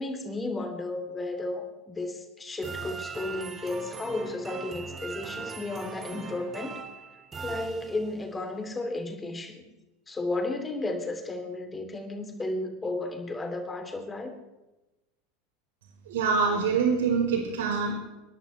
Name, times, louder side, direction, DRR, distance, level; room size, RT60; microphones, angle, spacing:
voice 1, 0.0-6.8 7.4-9.7 10.1-14.3, left 2 dB, 20° left, 4 dB, 3.0 m, -33 dB
sound 1, 2.6-8.3, right 5 dB, 25° right, 1.9 m, -40 dB
voice 2, 16.1-17.9, right 5 dB, 70° right, 0 dB, 4.7 m, -25 dB
28.5 x 11.0 x 3.3 m, 1.0 s
figure-of-eight pair, 80°, 0 cm